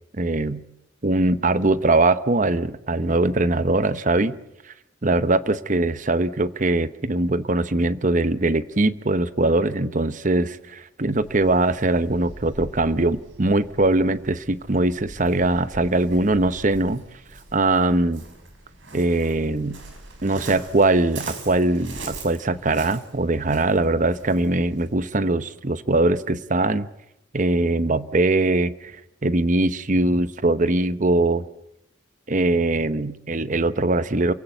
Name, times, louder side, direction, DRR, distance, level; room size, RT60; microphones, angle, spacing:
voice 1, 0.1-0.6 1.0-4.4 5.0-17.0 17.5-18.2 18.9-19.8 20.2-26.9 27.3-31.4 32.3-34.3, right 2 dB, 40° right, 14 dB, 0.9 m, -21 dB
Waves surf, 11.1-25.0, right 2 dB, 70° right, 5.7 m, -42 dB
28.5 x 16.5 x 8.0 m, 0.85 s
head